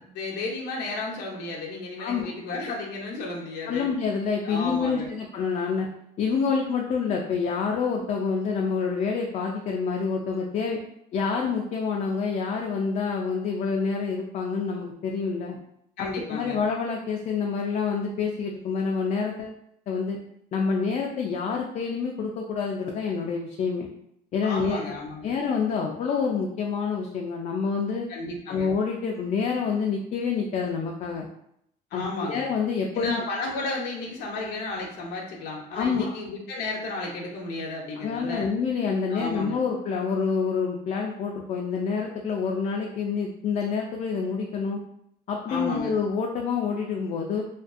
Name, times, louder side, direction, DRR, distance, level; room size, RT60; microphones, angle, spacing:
voice 1, 0.0-3.9 4.4-5.1 15.5-15.6 16.0-16.6 24.4-25.3 28.1-28.7 31.9-32.5 32.9-38.5 39.1-39.6 45.5-45.9, left 2 dB, 85° left, -3 dB, 0.6 m, -33 dB
voice 2, 2.0-2.3 3.7-5.9 6.2-10.8 11.1-15.6 16.0-19.6 19.9-20.2 20.5-23.9 24.3-24.8 25.2-28.1 28.5-31.3 31.9-33.2 35.7-36.1 38.0-44.8 45.3-47.4, left 5 dB, 45° left, 0 dB, 0.4 m, -27 dB
2.5 x 2.2 x 2.4 m, 0.74 s
cardioid pair, 110°, 17 cm